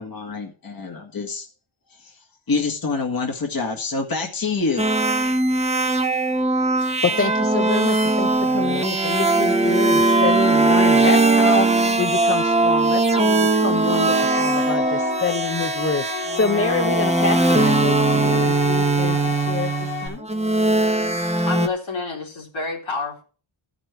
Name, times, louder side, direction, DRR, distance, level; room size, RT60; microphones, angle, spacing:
voice 1, 0.0-1.5 2.0-4.9, left 4 dB, 45° left, 2 dB, 1.8 m, -26 dB
sound 1, 4.8-21.7, right 2 dB, 15° right, 1.0 m, -20 dB
voice 2, 7.0-19.7 20.0-20.3, left 4 dB, 30° left, 7 dB, 0.7 m, -27 dB
sound 2, 14.0-20.1, left 9 dB, 90° left, 3.5 m, -31 dB
voice 3, 21.4-23.2, left 4 dB, 70° left, -1 dB, 3.6 m, -28 dB
14.5 x 6.1 x 4.5 m, 0.37 s
wide cardioid pair, 105°, 49 cm